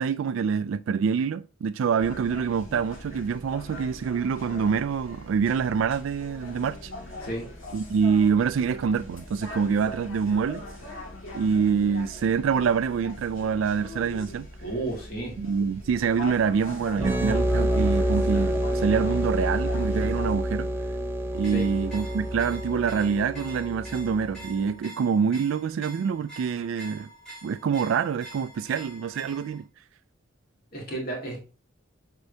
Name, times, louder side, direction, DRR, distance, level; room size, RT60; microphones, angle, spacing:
voice 1, 0.0-6.9 7.7-10.6 11.3-14.5 15.4-20.7 21.3-27.1 27.4-29.7, right 6 dB, 75° right, 0.3 m, -26 dB
sound 1, 2.0-20.3, left 2 dB, 85° left, 2.3 m, -41 dB
voice 2, 14.6-15.4 21.5-21.7 30.7-31.4, right 2 dB, 50° left, 2.5 m, -32 dB
sound 2, 17.0-24.5, right 1 dB, 10° right, 0.7 m, -27 dB
sound 3, 21.3-29.6, right 1 dB, 5° left, 3.4 m, -46 dB
8.2 x 4.5 x 2.7 m
head